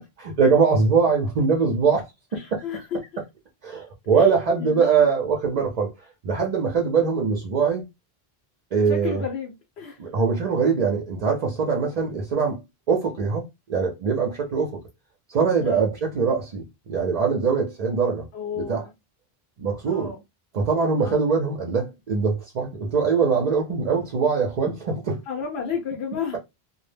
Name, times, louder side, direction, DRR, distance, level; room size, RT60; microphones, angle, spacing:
voice 1, 0.2-2.1 2.3-2.9 3.6-5.9 6.2-7.8 8.7-9.2 10.0-12.6 12.9-14.8 15.3-18.3 18.6-18.9 19.6-20.1 20.5-25.2, right 5 dB, 50° right, 0.5 m, -22 dB
voice 2, 2.3-3.0 4.2-4.3 4.6-5.1 8.9-10.0 15.6-15.9 18.3-18.9 19.9-20.2 21.0-21.2 25.3-26.4, left 6 dB, 75° left, 0.9 m, -32 dB
2.1 x 2.0 x 3.1 m
omnidirectional pair, 1.1 m